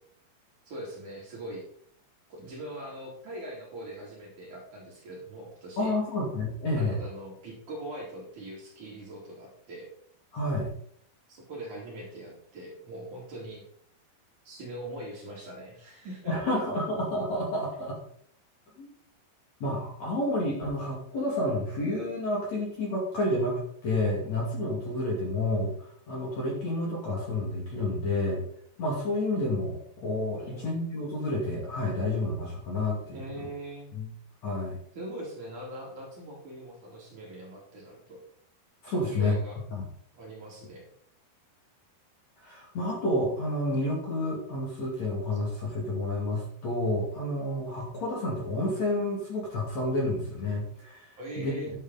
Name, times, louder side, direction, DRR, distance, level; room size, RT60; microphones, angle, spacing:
voice 1, 0.7-1.6 2.3-5.9 6.8-9.9 11.3-13.6 14.5-16.6 30.4-30.7 33.1-33.9 34.9-38.2 39.1-39.6 40.1-40.8 51.2-51.7, right 1 dB, 45° right, -3 dB, 3.7 m, -41 dB
voice 2, 5.8-7.0 10.3-10.7 16.3-18.0 18.8-18.9 19.6-28.4 28.8-33.5 34.0-34.1 34.4-34.8 38.8-39.4 39.7-39.8 42.4-51.5, left 1 dB, 45° left, -3 dB, 3.0 m, -30 dB
10.5 x 8.6 x 4.0 m, 0.64 s
omnidirectional pair, 5.2 m